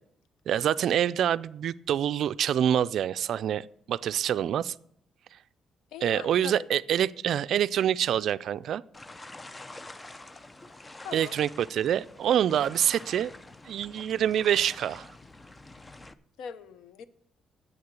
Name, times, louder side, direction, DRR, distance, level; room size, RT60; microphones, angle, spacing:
voice 1, 0.5-4.7 5.3-5.4 6.0-8.8 11.1-13.3 13.7-15.1, right 10 dB, 70° right, 14 dB, 0.3 m, -26 dB
voice 2, 5.9-6.7 11.0-11.4 16.4-17.0, left 7 dB, 85° left, 15 dB, 0.6 m, -41 dB
sound 1, 8.9-16.1, left 2 dB, 20° left, 0.6 m, -47 dB
8.8 x 6.7 x 8.0 m, 0.68 s
cardioid pair, 90°, 0 cm